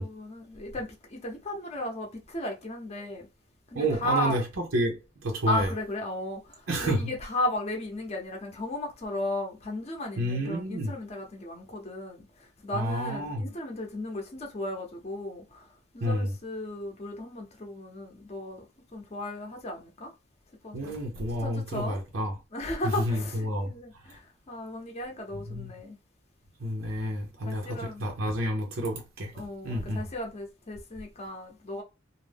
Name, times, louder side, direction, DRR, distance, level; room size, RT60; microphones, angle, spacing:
voice 1, 0.0-3.3 3.7-4.4 5.5-18.7 18.9-20.1 20.6-20.9 21.4-22.0 22.5-26.0 26.8-26.9 27.4-28.0 29.3-31.8, left 1 dB, 35° left, 0.6 m, -35 dB
voice 2, 3.7-4.4 4.7-5.7 6.7-7.0 10.2-10.9 12.7-13.4 16.0-16.3 20.7-22.3 22.8-23.7 25.5-25.7 26.6-29.3 29.6-30.0, equal, 85° right, 0.8 m, -29 dB
2.6 x 2.1 x 3.3 m
head